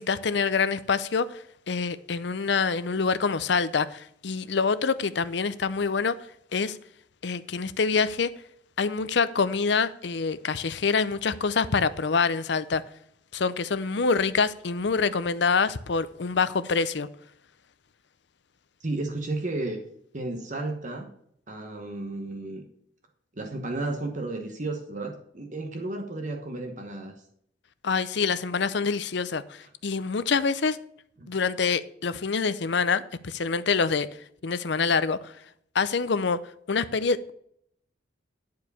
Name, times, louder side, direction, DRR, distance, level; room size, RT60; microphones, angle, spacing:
voice 1, 0.0-6.1 6.5-6.8 7.2-8.3 8.8-12.8 13.3-17.1 27.8-30.8 31.3-34.1 34.4-35.3 35.7-36.4 36.7-37.3, left 5 dB, 60° left, 0.6 m, -26 dB
voice 2, 18.8-19.8 20.1-21.1 21.5-22.6 23.4-27.1 31.2-31.3, right 2 dB, 40° right, 1.1 m, -33 dB
11.0 x 4.7 x 6.9 m
head